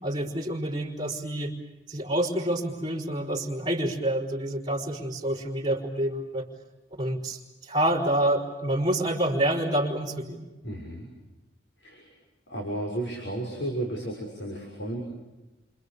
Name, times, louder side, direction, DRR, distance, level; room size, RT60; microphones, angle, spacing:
voice 1, 0.0-1.5 1.9-6.5 7.0-10.5, right 1 dB, 20° right, 4 dB, 5.0 m, -28 dB
voice 2, 10.6-11.1 11.8-12.1 12.5-15.0, right 1 dB, 75° left, 1 dB, 6.6 m, -33 dB
30.0 x 27.5 x 6.9 m, 1.1 s
head